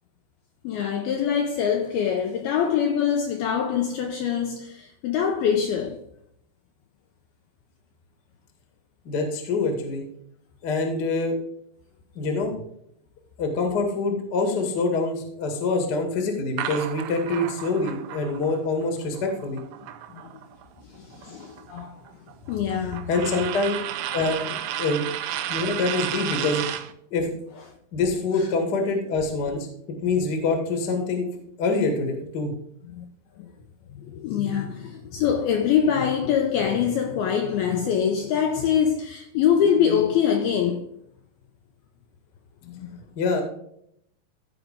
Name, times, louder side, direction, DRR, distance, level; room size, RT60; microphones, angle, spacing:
voice 1, 0.6-6.0 20.1-20.3 21.0-21.9 22.5-23.1 28.4-28.5 32.9-33.1 33.4-33.5 34.0-40.9 42.7-42.9, left 8 dB, 90° left, 2.2 m, -24 dB
voice 2, 9.0-10.0 10.6-11.3 12.1-12.5 13.4-19.6 23.1-23.8 24.1-25.0 25.5-26.6 27.1-27.3 27.9-29.7 30.0-31.3 31.6-32.5 43.1-43.4, left 3 dB, 55° left, 1.1 m, -25 dB
sound 1, 16.6-20.6 21.0-26.9, right 11 dB, 80° right, 2.9 m, -33 dB
15.5 x 5.1 x 3.6 m
omnidirectional pair, 5.2 m